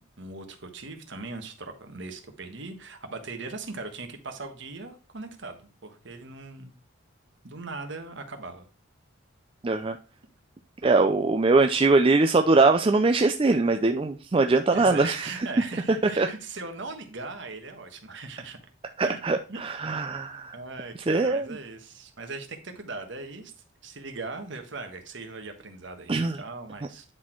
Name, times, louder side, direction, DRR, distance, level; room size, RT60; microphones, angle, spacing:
voice 1, 0.0-6.7 7.4-8.7 14.7-18.6 19.0-19.2 19.5-19.6 19.9-20.0 20.5-23.5 23.8-27.0, right 3 dB, 60° right, 6 dB, 1.3 m, -39 dB
voice 2, 9.6-10.0 10.8-15.3 16.2-16.3 19.0-20.5 21.1-21.5 26.1-26.4, right 3 dB, 25° right, 6 dB, 0.4 m, -22 dB
9.6 x 4.2 x 4.4 m, 0.36 s
head